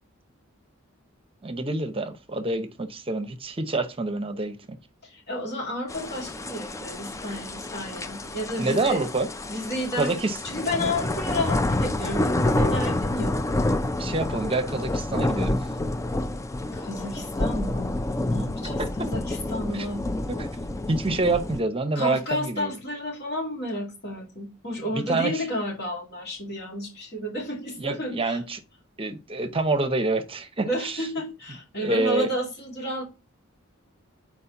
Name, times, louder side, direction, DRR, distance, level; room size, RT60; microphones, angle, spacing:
voice 1, 1.4-4.8 8.6-9.3 10.0-10.4 14.0-15.6 19.7-19.9 20.3-22.7 24.9-25.4 27.8-28.6 29.0-31.1 31.8-32.3, right 2 dB, 25° right, 0.8 m, -27 dB
voice 2, 5.0-9.1 9.5-10.2 10.4-13.6 16.8-20.0 21.9-28.4 30.6-33.0, left 1 dB, 50° left, 2.6 m, -31 dB
sound 1, 5.9-21.6, left 2 dB, 15° left, 0.4 m, -28 dB
4.7 x 4.2 x 5.8 m
head